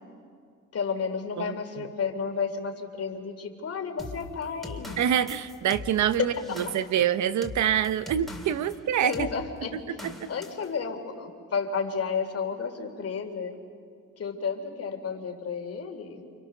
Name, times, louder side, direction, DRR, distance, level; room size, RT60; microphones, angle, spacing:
voice 1, 0.7-5.0 6.2-6.6 9.0-9.8 10.3-13.5 14.2-16.2, left 5 dB, 50° left, 5 dB, 3.5 m, -32 dB
sound 1, 4.0-8.8 9.1-9.4 10.0-10.7, left 2 dB, ahead, 3.5 m, -41 dB
voice 2, 5.0-9.3 9.7-10.3, right 9 dB, 70° right, 13 dB, 1.0 m, -26 dB
29.5 x 29.0 x 6.8 m, 2.2 s
cardioid pair, 90°, 30 cm